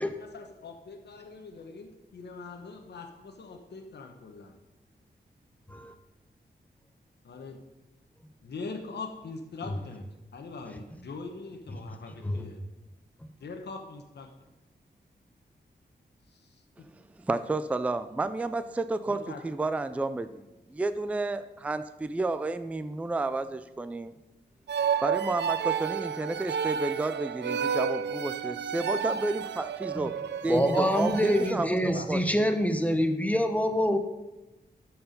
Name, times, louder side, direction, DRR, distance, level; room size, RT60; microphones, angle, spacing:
voice 1, 0.0-4.5 7.2-7.6 8.4-10.1 10.3-12.6 13.4-14.3 19.1-19.4 31.9-32.1, left 4 dB, 75° left, 3 dB, 1.0 m, -42 dB
voice 2, 17.3-20.4 20.7-24.1 25.0-30.1 30.4-32.2, right 2 dB, 10° right, 11 dB, 0.3 m, -31 dB
sound 1, 24.7-31.5, right 7 dB, 80° right, 0.4 m, -31 dB
voice 3, 30.5-34.0, equal, 10° left, 7 dB, 0.7 m, -26 dB
12.0 x 4.7 x 5.2 m, 0.99 s
wide cardioid pair, 155°, 18 cm